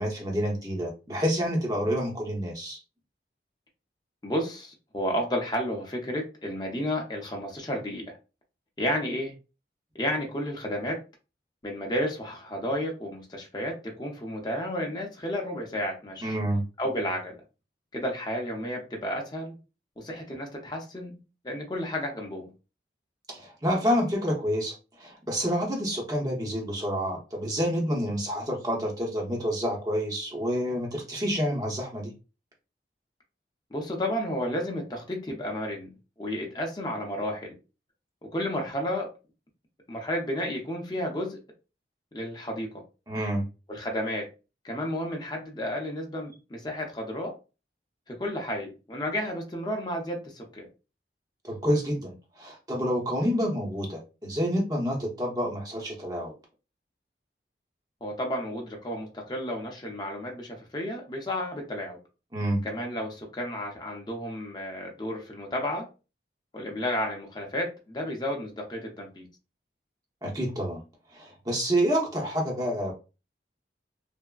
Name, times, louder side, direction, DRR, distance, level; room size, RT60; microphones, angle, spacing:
voice 1, 0.0-2.8 16.2-16.6 23.3-32.1 43.1-43.4 51.5-56.3 62.3-62.6 70.2-70.8 71.1-72.9, equal, 20° right, 0.7 m, -28 dB
voice 2, 4.2-8.2 8.8-9.3 9.9-11.0 11.6-16.4 16.8-17.4 17.9-19.6 20.0-21.2 21.4-22.5 33.7-37.6 38.3-39.1 39.9-41.4 42.1-42.8 43.7-44.3 44.6-47.4 48.1-50.7 58.0-62.0 62.6-65.9 66.5-69.3, equal, 25° left, 0.6 m, -32 dB
3.4 x 2.0 x 2.3 m
head